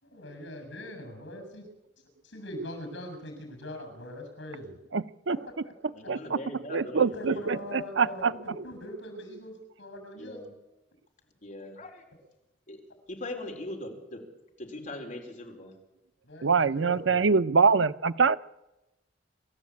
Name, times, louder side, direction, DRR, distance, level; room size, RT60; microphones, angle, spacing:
voice 1, 0.0-1.6 2.2-4.8 5.6-5.7 7.0-10.4 16.2-17.3, equal, 80° left, 7 dB, 7.0 m, -41 dB
voice 2, 4.9-5.4 6.1-6.4 6.7-8.3 16.4-18.4, right 5 dB, 85° right, 13 dB, 0.7 m, -24 dB
voice 3, 5.9-7.4 10.1-10.5 11.4-12.0 12.7-12.8 13.1-14.2 14.6-15.7, left 1 dB, 45° left, 1 dB, 4.1 m, -40 dB
28.0 x 14.0 x 8.5 m, 1.0 s
head